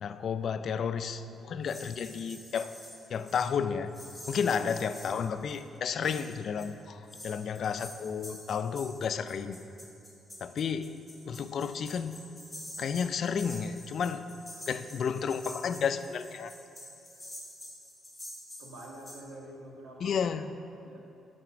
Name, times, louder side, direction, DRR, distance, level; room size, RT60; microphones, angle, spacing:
voice 1, 0.0-2.7 3.1-3.9 4.3-9.6 10.4-10.9 11.2-12.2 12.8-14.3 14.7-16.5 20.0-20.5, left 6 dB, 60° left, 11 dB, 0.4 m, -32 dB
sound 1, 1.6-3.5 3.9-5.8 6.0-6.7 7.1-19.2, left 1 dB, 10° left, 2.1 m, -48 dB
voice 2, 18.6-20.3 20.8-21.1, right 1 dB, 85° right, -2 dB, 1.6 m, -46 dB
10.5 x 4.2 x 6.0 m, 2.7 s
cardioid pair, 90°, 0 cm